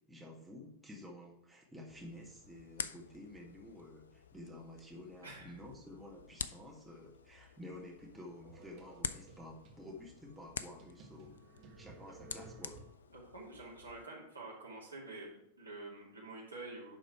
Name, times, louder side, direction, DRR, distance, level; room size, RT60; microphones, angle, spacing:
voice 1, 0.1-11.4 11.8-12.8, left 1 dB, 5° right, -3 dB, 1.8 m, -51 dB
sound 1, 1.9-14.1, left 6 dB, 70° left, 0.4 m, -48 dB
sound 2, 8.4-9.8 10.3-10.4 10.8-13.2, right 3 dB, 40° right, 1.4 m, -56 dB
voice 2, 13.1-17.0, right 2 dB, 80° right, -4 dB, 2.5 m, -48 dB
10.5 x 3.9 x 4.7 m, 0.76 s
figure-of-eight pair, 90°, 0 cm